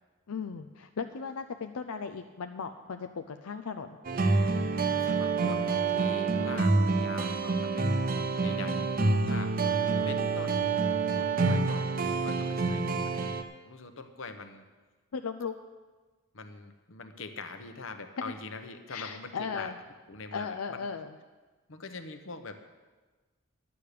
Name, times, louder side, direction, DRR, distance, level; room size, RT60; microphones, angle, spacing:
voice 1, 0.3-4.0 10.2-10.3 15.1-15.5 18.9-19.8 20.3-21.1, left 5 dB, 90° left, 7 dB, 0.5 m, -37 dB
sound 1, 4.0-13.4, right 4 dB, 40° right, 0.6 m, -27 dB
voice 2, 5.0-7.9 8.4-10.7 11.2-14.6 16.3-19.7 20.1-20.9 21.7-22.6, left 3 dB, 65° left, 8 dB, 1.0 m, -43 dB
11.5 x 8.5 x 6.7 m, 1.3 s
head